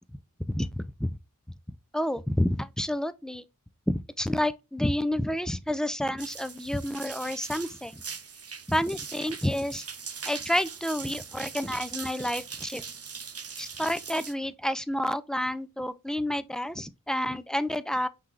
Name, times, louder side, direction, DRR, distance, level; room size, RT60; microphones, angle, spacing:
voice 1, 0.5-1.1 1.7-3.5 3.9-8.0 8.7-9.9 10.2-12.8 13.6-18.1, left 1 dB, ahead, 0.3 m, -29 dB
sound 1, 6.2-14.3, right 6 dB, 50° right, 0.5 m, -41 dB
5.7 x 3.3 x 2.4 m
wide cardioid pair, 50°, 32 cm